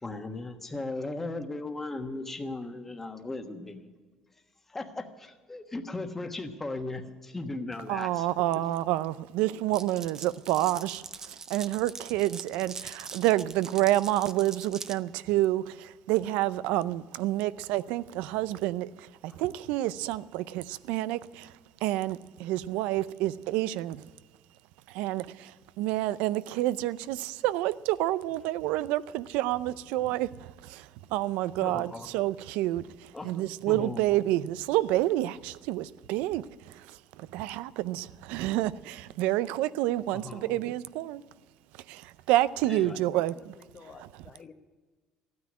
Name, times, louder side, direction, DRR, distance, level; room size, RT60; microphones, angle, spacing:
voice 1, 0.0-3.9 4.7-8.3 31.6-32.1 33.1-34.1 40.1-40.6 42.7-43.0, left 2 dB, 15° left, 1.3 m, -37 dB
voice 2, 7.9-18.9 19.2-21.5 21.8-24.0 24.9-25.5 25.8-30.3 30.6-30.9 31.1-32.8 33.2-36.4 37.3-41.2 41.9-43.5 44.0-44.1, right 15 dB, 90° right, 0.5 m, -28 dB
Glass, 9.7-15.0, right 5 dB, 25° right, 0.6 m, -43 dB
voice 3, 42.8-44.5, left 5 dB, 30° left, 0.9 m, -52 dB
14.0 x 9.5 x 9.7 m
cardioid pair, 140°, 2 cm